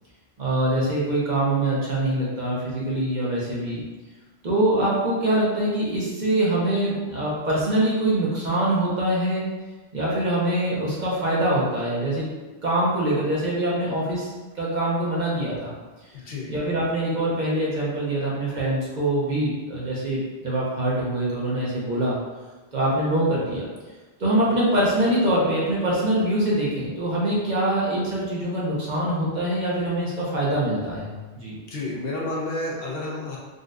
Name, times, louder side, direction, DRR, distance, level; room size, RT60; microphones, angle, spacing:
voice 1, 0.4-3.8 4.4-9.4 9.9-12.3 12.6-15.7 16.5-22.2 22.7-23.7 24.2-31.5, right 1 dB, 50° right, -6 dB, 0.8 m, -24 dB
voice 2, 16.1-16.5 31.7-33.4, left 2 dB, 65° left, -3 dB, 0.8 m, -30 dB
3.8 x 2.3 x 2.5 m, 1.2 s
omnidirectional pair, 1.1 m